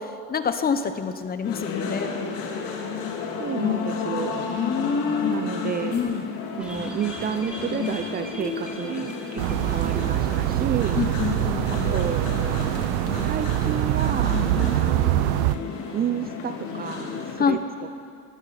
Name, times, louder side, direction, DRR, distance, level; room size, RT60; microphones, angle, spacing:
voice 1, 0.0-2.1 4.5-5.4 5.9-6.3 9.5-9.6 11.0-11.9 14.3-14.6 17.4-17.6, left 6 dB, 25° left, 10 dB, 1.0 m, -27 dB
sound 1, 1.4-17.4, left 6 dB, 75° left, 2.9 m, -32 dB
voice 2, 3.4-4.5 5.2-6.1 6.5-11.0 11.7-12.4 13.2-14.4 14.8-15.3 15.9-17.6, right 8 dB, 25° right, 10 dB, 0.5 m, -31 dB
sound 2, 6.6-10.1 10.3-10.4 10.7-10.8, right 1 dB, 5° right, 3.0 m, -42 dB
sound 3, 9.4-15.5, right 16 dB, 70° right, 0.6 m, -24 dB
22.0 x 14.5 x 4.3 m, 2.4 s
supercardioid pair, 115°, 36 cm